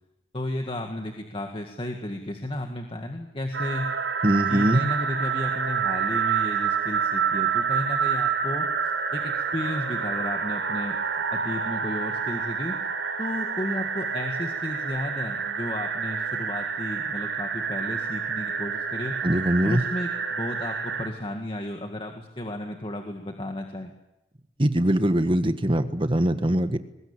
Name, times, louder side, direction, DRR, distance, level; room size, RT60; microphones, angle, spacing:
voice 1, 0.3-3.9 4.5-8.7 9.1-11.0 11.3-12.7 13.2-19.2 19.6-23.9, left 1 dB, 30° left, 3 dB, 1.9 m, -33 dB
sound 1, 3.5-21.1, right 6 dB, 85° right, 5.7 m, -28 dB
voice 2, 4.2-4.9 19.2-19.8 24.6-26.8, right 1 dB, 30° right, 9 dB, 1.5 m, -22 dB
23.0 x 20.5 x 8.9 m, 0.94 s
head